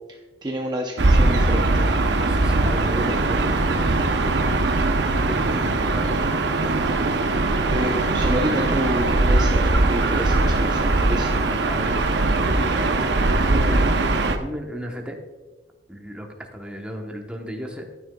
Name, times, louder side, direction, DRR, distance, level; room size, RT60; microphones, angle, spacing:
voice 1, 0.1-1.9 7.7-11.3, equal, 25° right, 1 dB, 0.6 m, -29 dB
Gull seagull / Ocean, 1.0-14.4, right 2 dB, 70° right, 0.7 m, -20 dB
voice 2, 2.2-3.9 5.3-6.5 7.5-8.7 11.6-12.0 13.3-14.0 14.4-15.2 15.9-17.8, equal, 5° right, 2 dB, 1.0 m, -34 dB
12.5 x 9.5 x 2.3 m, 1.2 s
head